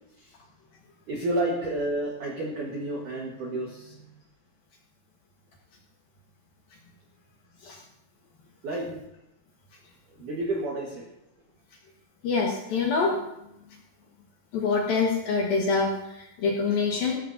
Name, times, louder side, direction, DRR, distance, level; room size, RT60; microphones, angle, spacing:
voice 1, 1.1-4.2 8.6-9.0 10.2-11.1, right 1 dB, 70° right, -1 dB, 1.9 m, -31 dB
voice 2, 12.2-13.2 14.5-17.2, left 4 dB, 65° left, -1 dB, 2.6 m, -25 dB
18.0 x 14.0 x 2.7 m, 0.86 s
omnidirectional pair, 5.9 m